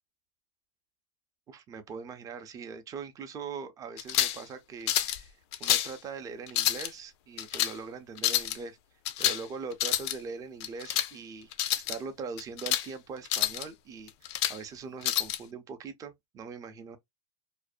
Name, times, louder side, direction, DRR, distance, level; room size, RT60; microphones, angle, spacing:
voice 1, 1.5-8.8 9.2-11.5 11.9-17.0, right 5 dB, 20° right, 0.5 m, -41 dB
sound 1, 4.0-4.4 4.9-5.2 5.5-5.9 6.5-6.9 7.4-7.7 8.2-8.6 9.1-9.4 9.7-10.2 10.6-11.1 11.5-12.0 12.4-12.9 13.3-13.6 14.1-14.6 15.0-15.4, left 13 dB, 55° left, 0.4 m, -28 dB
2.5 x 2.1 x 2.3 m
supercardioid pair, 135°, 18 cm